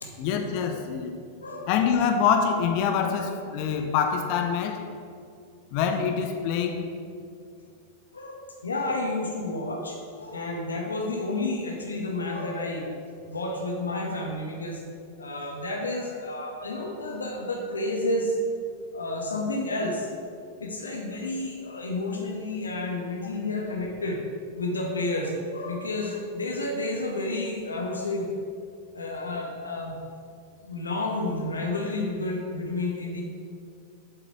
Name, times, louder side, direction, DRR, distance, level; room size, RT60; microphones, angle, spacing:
voice 1, 0.2-1.2 1.7-4.8 5.7-6.9, left 7 dB, 45° left, 4 dB, 0.6 m, -25 dB
voice 2, 8.1-12.8 13.2-14.8 15.2-18.4 18.9-20.1 20.6-24.2 24.6-28.3 28.9-30.0 30.6-33.2, left 2 dB, 75° left, 0 dB, 0.8 m, -30 dB
7.9 x 3.9 x 4.7 m, 2.3 s
figure-of-eight pair, 90°, 0 cm